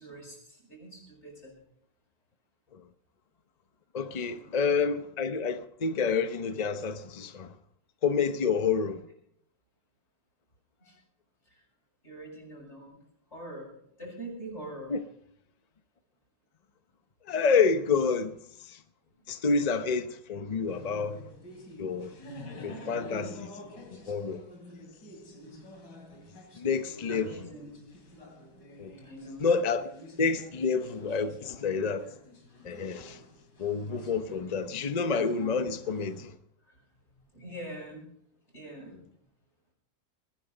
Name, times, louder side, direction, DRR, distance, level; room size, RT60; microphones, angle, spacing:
voice 1, 0.0-1.5 4.4-4.5 10.8-10.9 12.0-13.0 13.3-13.7 14.0-14.9 27.1-27.7 29.0-29.5 36.7-36.8 37.1-38.1 38.5-38.9, right 1 dB, 35° left, 7.3 m, -43 dB
voice 2, 3.9-7.5 8.0-9.0 14.9-15.0 17.3-18.4 18.7-18.8 19.3-21.2 21.8-22.1 22.6-24.4 26.6-27.5 28.8-28.9 29.4-29.9 30.2-32.1 32.6-33.2 33.6-36.4, left 5 dB, 85° left, 0.3 m, -28 dB
sound 1, 20.7-36.3, left 1 dB, 65° left, 3.3 m, -48 dB
21.0 x 10.5 x 5.4 m
omnidirectional pair, 2.0 m